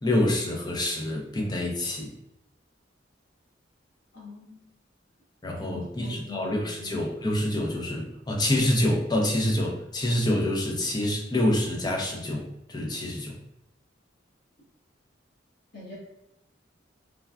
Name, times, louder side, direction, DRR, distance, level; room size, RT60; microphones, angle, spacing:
voice 1, 0.0-2.1 5.4-13.4, left 1 dB, 20° left, 0 dB, 0.5 m, -27 dB
voice 2, 4.1-4.6 5.7-7.0 15.7-15.9, left 2 dB, 55° left, -7 dB, 1.4 m, -43 dB
3.4 x 2.2 x 2.4 m, 0.86 s
head